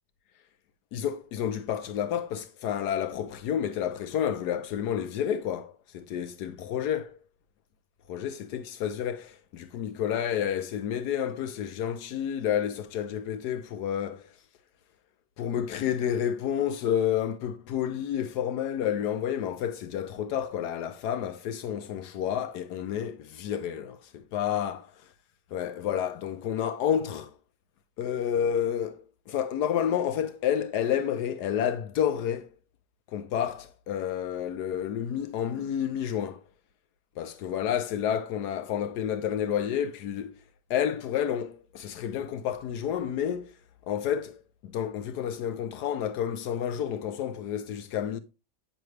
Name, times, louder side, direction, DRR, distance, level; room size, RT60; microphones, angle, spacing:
voice 1, 0.9-7.2 8.1-14.3 15.4-24.9 25.5-27.3 28.0-32.5 33.1-36.4 37.2-40.3 40.7-43.5 43.9-48.2, left 9 dB, 80° left, 1.2 m, -30 dB
9.4 x 6.8 x 3.2 m
omnidirectional pair, 1.7 m